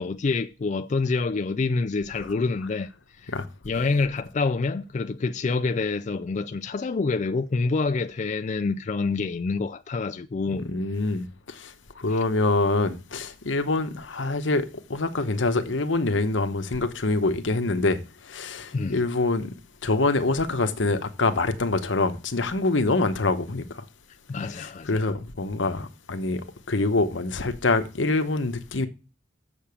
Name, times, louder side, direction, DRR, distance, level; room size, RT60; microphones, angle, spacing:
voice 1, 0.0-2.9 3.2-3.3 3.6-10.7 12.1-12.2 18.7-19.0 24.3-25.1, left 4 dB, 40° left, 0.4 m, -27 dB
voice 2, 10.5-19.5 19.8-23.8 24.5-28.9, left 3 dB, 75° left, 1.0 m, -25 dB
7.1 x 6.8 x 7.0 m
head